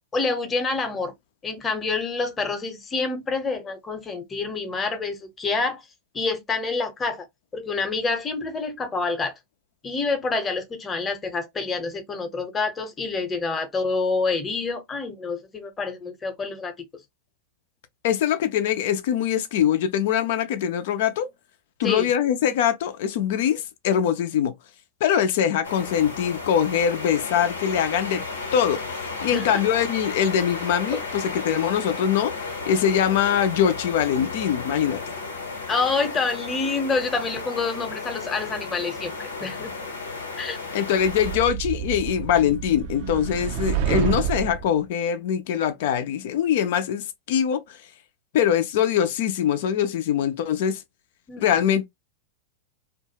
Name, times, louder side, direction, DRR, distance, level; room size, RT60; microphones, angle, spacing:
voice 1, 0.1-1.1 1.4-5.8 6.1-7.3 7.5-9.3 9.8-16.7 21.8-22.1 29.3-29.6 30.9-31.0 35.7-39.1 39.4-39.7 40.4-40.6 51.3-51.6, left 4 dB, 20° left, 0.9 m, -27 dB
voice 2, 18.0-21.3 21.8-24.5 25.0-28.2 28.5-28.8 29.2-35.0 40.7-47.8 48.3-50.8 51.4-51.8, left 9 dB, 65° left, 0.6 m, -23 dB
sound 1, 25.6-41.4, left 3 dB, 90° left, 0.8 m, -34 dB
sound 2, 41.0-44.7, right 9 dB, 60° right, 0.6 m, -28 dB
2.6 x 2.3 x 2.8 m
hypercardioid pair, 100°, 0 cm